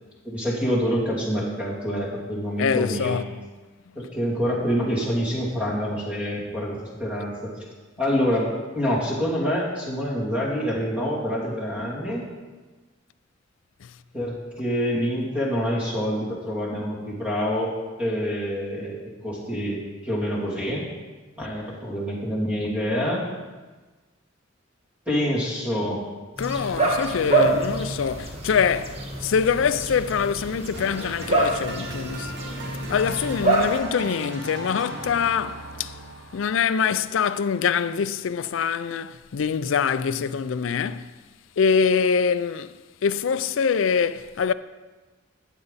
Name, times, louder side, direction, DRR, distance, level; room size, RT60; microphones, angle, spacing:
voice 1, 0.2-3.2 3.9-7.6 8.0-12.2 14.1-20.9 21.4-23.2 25.1-26.0 27.4-27.6, equal, 5° right, 2.7 m, -26 dB
voice 2, 2.6-3.2 26.4-32.4 32.9-35.9 36.3-41.1 41.6-42.7 43.0-44.5, left 6 dB, 75° left, 0.4 m, -24 dB
sound 1, 26.4-33.8, right 2 dB, 30° right, 1.4 m, -26 dB
sound 2, 30.7-37.5, right 1 dB, 60° right, 1.4 m, -38 dB
14.0 x 8.1 x 4.1 m
head